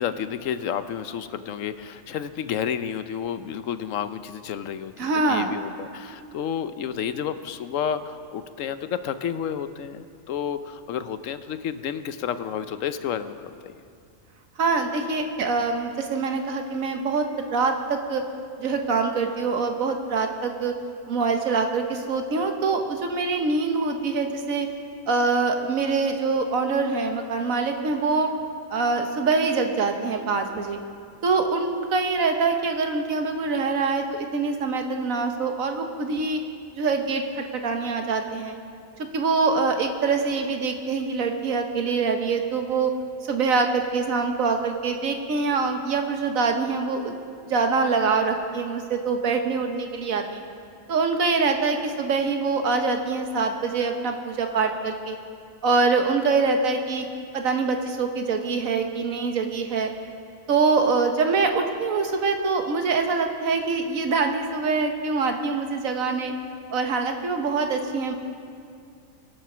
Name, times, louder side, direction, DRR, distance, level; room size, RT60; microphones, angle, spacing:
voice 1, 0.0-13.8, left 8 dB, 75° left, 12 dB, 1.0 m, -31 dB
voice 2, 5.0-5.5 14.6-18.2 18.6-20.7 21.1-24.7 25.1-28.3 28.7-30.8 31.2-36.4 36.7-38.6 39.1-42.9 43.3-47.1 47.5-50.4 50.9-55.2 55.6-57.1 57.3-59.9 60.5-66.3 66.7-68.1, right 4 dB, 90° right, 5 dB, 1.5 m, -24 dB
22.0 x 7.3 x 6.1 m, 2.4 s
omnidirectional pair, 1.4 m